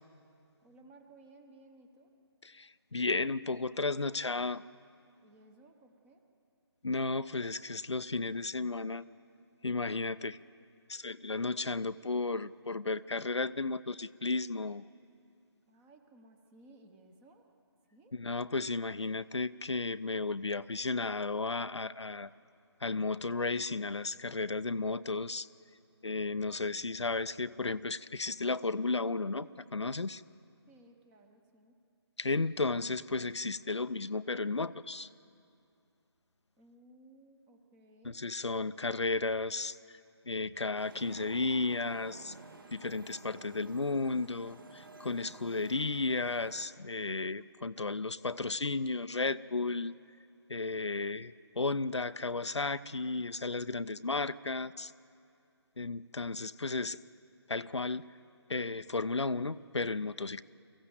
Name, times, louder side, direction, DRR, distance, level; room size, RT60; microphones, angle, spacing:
voice 1, 0.6-2.1 5.2-6.2 15.7-17.5 17.9-18.1 30.7-31.8 36.6-38.2, right 2 dB, 10° right, 5 dB, 0.8 m, -59 dB
voice 2, 2.4-4.6 6.8-9.0 9.6-10.4 10.9-14.8 18.1-22.3 22.8-25.5 26.0-30.2 32.2-35.1 38.0-39.8 40.3-42.3 42.7-49.9 50.5-54.9 55.8-57.0 57.5-58.1 58.5-60.4, left 3 dB, 90° left, 14 dB, 0.5 m, -34 dB
sound 1, 40.8-46.7, right 3 dB, 50° right, 1.6 m, -52 dB
23.5 x 15.0 x 7.9 m, 2.5 s
figure-of-eight pair, 150°, 14 cm